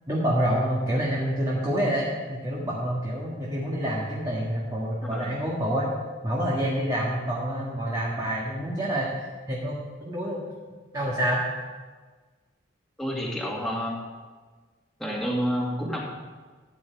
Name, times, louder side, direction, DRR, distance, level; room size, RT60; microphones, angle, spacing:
voice 1, 0.1-5.9 6.2-10.4 10.9-11.4, equal, 20° right, -5 dB, 1.7 m, -27 dB
voice 2, 13.0-14.0 15.0-16.0, equal, ahead, -3 dB, 2.2 m, -29 dB
14.0 x 9.1 x 4.7 m, 1.4 s
head